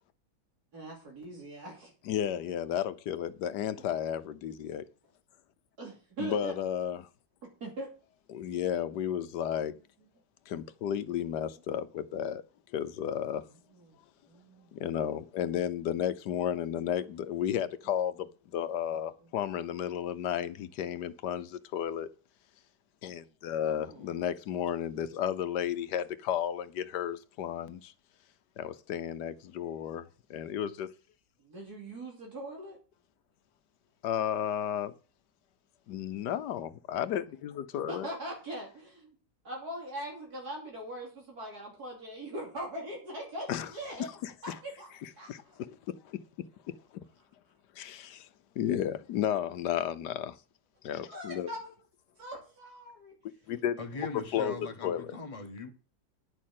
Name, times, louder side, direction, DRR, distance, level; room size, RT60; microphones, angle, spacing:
voice 1, 0.7-1.9 5.8-6.6 7.6-7.9 9.7-10.1 11.1-11.6 13.7-14.0 14.3-14.7 17.8-18.0 18.9-19.3 23.7-24.1 31.4-32.8 37.9-39.2 39.4-44.1 44.4-45.6 50.9-51.7 52.2-53.1, right 1 dB, 65° right, 3.4 m, -42 dB
voice 2, 2.1-4.9 6.2-7.1 8.3-9.7 10.5-12.4 12.7-13.4 14.7-22.1 23.0-27.9 28.6-30.9 34.0-34.9 35.9-38.1 43.5-43.7 44.2-44.5 45.3-45.8 46.0-46.2 46.9-47.0 47.8-48.3 48.6-50.4 50.8-51.5 53.5-53.8 54.3-54.6 54.8-55.2, left 10 dB, 80° left, 1.4 m, -33 dB
voice 3, 53.8-55.7, left 3 dB, 20° left, 1.6 m, -40 dB
10.0 x 6.5 x 7.5 m
omnidirectional pair, 1.8 m